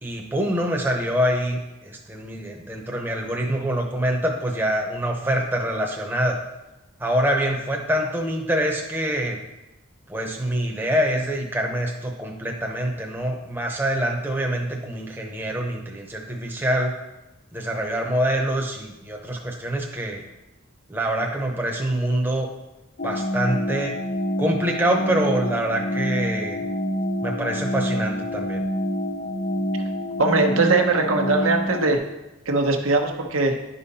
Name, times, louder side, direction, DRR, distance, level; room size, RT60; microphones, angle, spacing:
voice 1, 0.0-6.4 7.0-9.4 10.1-16.9 17.5-20.2 20.9-22.5 23.0-24.0 24.4-26.6 27.2-28.6, right 1 dB, 10° right, 0 dB, 0.8 m, -25 dB
sound 1, 23.0-32.0, equal, 45° left, 0.6 m, -27 dB
voice 2, 30.2-32.0 32.5-33.6, right 3 dB, 80° right, 2 dB, 1.1 m, -20 dB
10.5 x 5.5 x 4.2 m, 0.99 s
head